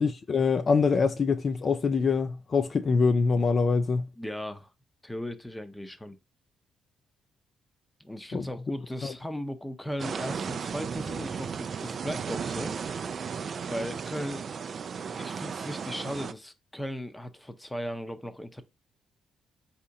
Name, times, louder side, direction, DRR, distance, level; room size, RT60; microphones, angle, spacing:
voice 1, 0.0-4.1 8.3-8.4 9.0-9.1, left 5 dB, 40° left, 0.3 m, -24 dB
voice 2, 4.2-4.7 5.0-6.1 8.0-12.7 13.7-14.4 15.0-18.6, equal, 5° left, 0.7 m, -37 dB
sound 1, 10.0-16.3, right 6 dB, 50° right, 0.3 m, -35 dB
4.2 x 2.8 x 3.6 m
cardioid pair, 90°, 0 cm